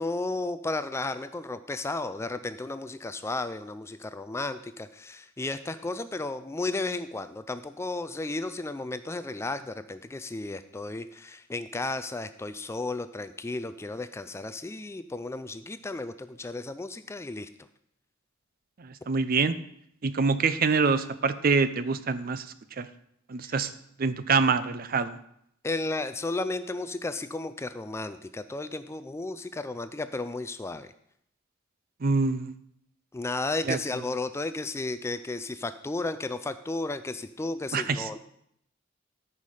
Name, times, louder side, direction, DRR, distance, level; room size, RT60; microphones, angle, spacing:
voice 1, 0.0-17.5 25.6-30.9 33.1-38.2, left 2 dB, 15° left, 12 dB, 0.3 m, -33 dB
voice 2, 18.8-19.5 20.0-22.4 22.8-22.9 23.3-23.7 24.0-25.1 32.0-32.5 33.7-33.8 37.7-38.1, right 4 dB, 45° right, 13 dB, 0.5 m, -25 dB
13.0 x 5.5 x 4.9 m, 0.73 s
head